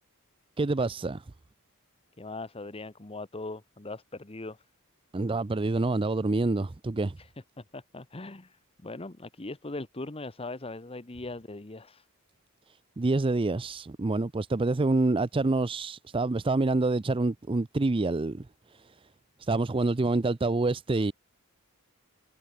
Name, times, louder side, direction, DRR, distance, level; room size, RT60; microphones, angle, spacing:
voice 1, 0.6-1.2 5.1-7.2 13.0-18.5 18.7-18.8 19.4-21.1, right 2 dB, 25° right, 0.5 m, -27 dB
voice 2, 2.2-4.6 7.2-7.3 7.6-12.0, left 2 dB, 25° left, 1.1 m, -40 dB
head